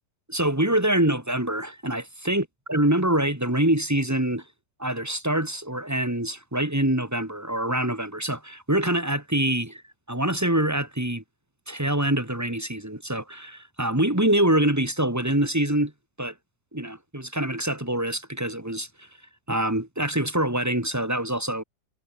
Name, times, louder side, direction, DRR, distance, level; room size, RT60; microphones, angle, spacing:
voice 1, 0.3-4.4 4.8-9.8 10.1-11.2 11.7-15.9 16.2-16.3 16.7-19.1 19.5-21.6, right 1 dB, 10° right, 2.3 m, -25 dB
omnidirectional pair, 1.8 m